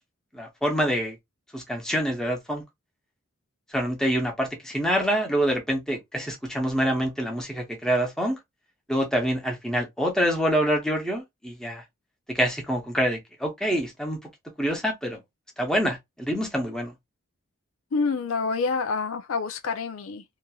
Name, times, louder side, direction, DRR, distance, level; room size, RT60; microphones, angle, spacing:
voice 1, 0.3-1.2 1.5-2.6 3.7-8.4 8.9-11.8 12.3-14.2 14.6-15.2 15.6-16.9, equal, 5° left, 0.8 m, -26 dB
voice 2, 17.9-20.2, left 4 dB, 80° left, 0.5 m, -27 dB
2.9 x 2.5 x 2.3 m
head